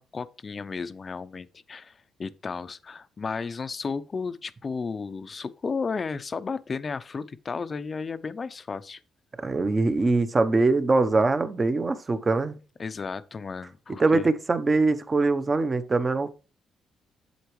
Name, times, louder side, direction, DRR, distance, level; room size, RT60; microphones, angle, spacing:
voice 1, 0.0-9.0 12.8-14.3, left 5 dB, 35° left, 0.5 m, -33 dB
voice 2, 9.4-12.6 14.0-16.3, right 3 dB, 30° right, 0.8 m, -23 dB
8.1 x 7.8 x 3.1 m
cardioid pair, 90°, 0 cm